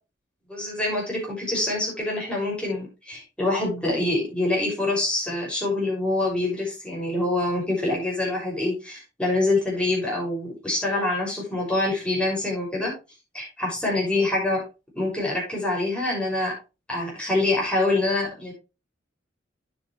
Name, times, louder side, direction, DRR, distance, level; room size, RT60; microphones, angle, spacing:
voice 1, 0.5-12.9 13.3-14.6 14.9-16.5 16.9-18.5, left 2 dB, 5° left, -3 dB, 6.2 m, -25 dB
9.5 x 8.5 x 3.2 m, 0.28 s
head